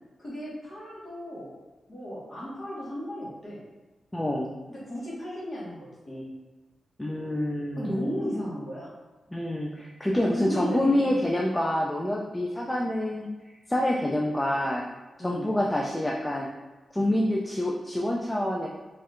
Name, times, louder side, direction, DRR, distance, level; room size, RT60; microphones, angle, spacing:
voice 1, 0.2-1.5 1.9-3.6 4.7-6.3 7.8-8.9 10.1-11.2 15.2-15.5, equal, 30° left, -7 dB, 1.4 m, -34 dB
voice 2, 4.1-4.5 7.0-8.1 9.3-13.3 13.7-14.8 15.2-16.5 16.9-18.7, left 1 dB, 10° left, -2 dB, 0.3 m, -27 dB
4.4 x 3.1 x 2.4 m, 1.2 s
wide cardioid pair, 150°, 0 cm